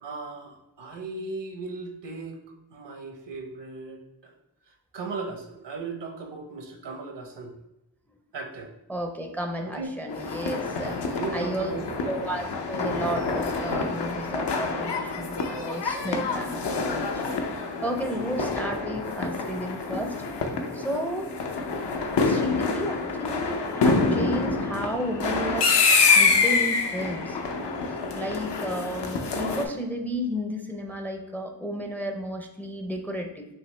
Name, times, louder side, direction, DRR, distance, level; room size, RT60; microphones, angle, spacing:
voice 1, 0.0-2.4 2.7-4.3 4.9-7.5 8.3-8.7 9.6-9.9 11.1-12.3 18.1-18.5 20.8-21.0, right 3 dB, 75° right, 3 dB, 0.9 m, -37 dB
voice 2, 8.9-11.7 12.1-17.4 17.8-20.1 20.7-21.3 22.2-25.8 26.1-27.4 28.1-33.5, equal, 5° left, 4 dB, 0.5 m, -32 dB
sound 1, 10.1-29.6, left 4 dB, 70° left, 0.7 m, -26 dB
5.6 x 2.8 x 3.2 m, 0.87 s
cardioid pair, 75°, 43 cm